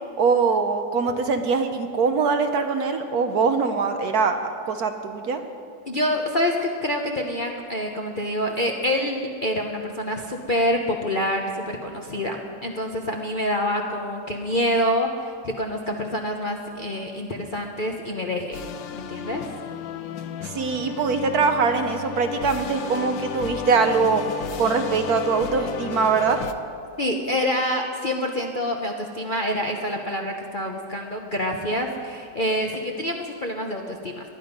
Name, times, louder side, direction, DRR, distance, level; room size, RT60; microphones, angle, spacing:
voice 1, 0.2-4.4 4.6-5.4 20.4-24.2 24.6-26.4, right 5 dB, 60° right, 7 dB, 1.2 m, -22 dB
voice 2, 5.9-18.6 18.9-19.4 27.0-34.3, left 1 dB, 40° left, 1 dB, 0.8 m, -26 dB
sound 1, 18.5-26.5, left 7 dB, 85° left, 1.5 m, -33 dB
19.5 x 11.5 x 5.3 m, 2.4 s
omnidirectional pair, 2.0 m